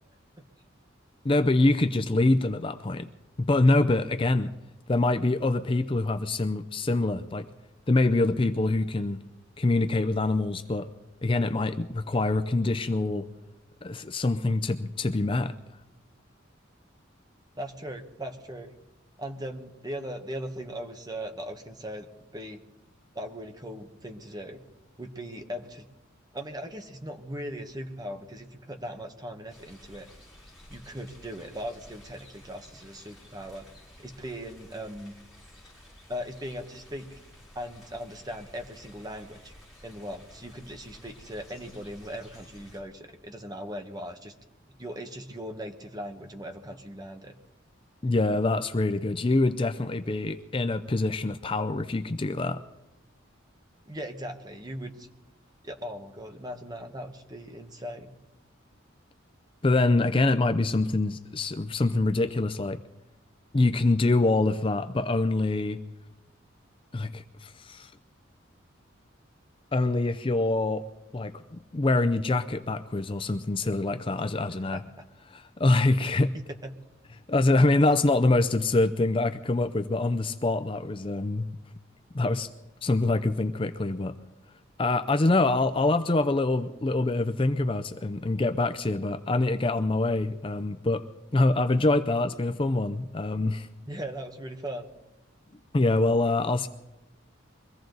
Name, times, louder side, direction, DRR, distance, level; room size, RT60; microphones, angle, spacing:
voice 1, 1.2-3.1 3.4-4.5 4.9-7.5 7.9-9.2 9.6-10.9 11.2-13.3 13.8-15.5 48.0-52.6 59.6-62.8 63.5-65.8 66.9-67.9 69.7-70.8 71.1-74.8 75.3-76.3 77.3-81.5 82.1-82.5 82.8-84.1 84.8-91.0 91.3-93.7 95.7-96.7, left 2 dB, 25° left, 9 dB, 0.5 m, -25 dB
voice 2, 17.6-18.7 19.2-22.6 23.1-24.6 25.0-25.9 26.3-30.1 30.7-33.7 34.0-35.1 36.1-37.2 37.5-39.5 39.8-44.3 44.8-47.3 53.9-55.1 55.6-58.1 74.5-74.8 76.0-76.7 93.9-94.9, equal, 20° right, 5 dB, 1.3 m, -39 dB
sound 1, 29.5-42.8, left 1 dB, ahead, 7.1 m, -53 dB
23.5 x 15.5 x 4.0 m, 1.0 s
head